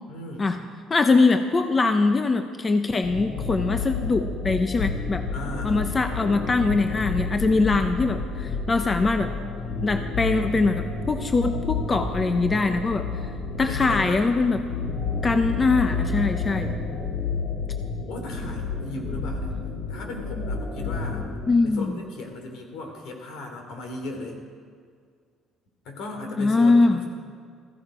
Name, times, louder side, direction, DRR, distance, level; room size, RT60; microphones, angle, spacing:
voice 1, 0.1-0.5 5.3-5.8 13.6-14.3 18.1-19.5 19.9-21.3 21.6-24.4 25.8-27.0, left 2 dB, 75° left, 3 dB, 3.1 m, -36 dB
voice 2, 0.9-5.2 5.6-9.3 9.8-13.0 13.6-14.6 15.2-16.7 21.5-22.0 26.4-27.0, left 3 dB, 20° left, 7 dB, 0.6 m, -22 dB
sound 1, 3.0-21.5, left 4 dB, 50° left, 2.6 m, -30 dB
16.0 x 15.0 x 4.9 m, 2.1 s
cardioid pair, 145°, 0 cm